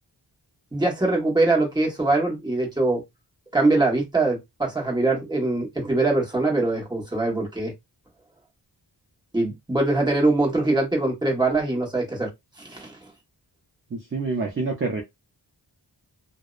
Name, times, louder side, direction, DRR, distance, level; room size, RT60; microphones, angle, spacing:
voice 1, 0.7-3.0 3.5-7.7 9.3-12.3 12.6-12.9, right 2 dB, 10° right, 1.1 m, -22 dB
voice 2, 13.9-15.0, right 3 dB, 30° right, 0.5 m, -27 dB
2.6 x 2.0 x 2.3 m
wide cardioid pair, 95°, 43 cm